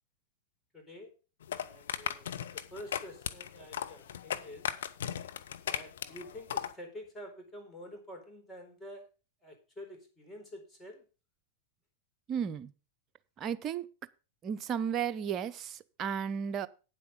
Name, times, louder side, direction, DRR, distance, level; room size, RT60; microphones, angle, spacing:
voice 1, 0.7-1.1 1.6-2.3 2.5-4.7 5.7-9.1 9.4-11.1, left 1 dB, 10° left, 2 dB, 4.2 m, -48 dB
sound 1, 1.4-6.7, left 9 dB, 65° left, 0.9 m, -36 dB
voice 2, 12.3-12.7 13.4-13.9 14.4-16.7, right 8 dB, 35° right, 12 dB, 0.8 m, -34 dB
9.7 x 7.9 x 5.4 m, 0.33 s
figure-of-eight pair, 90°, 0 cm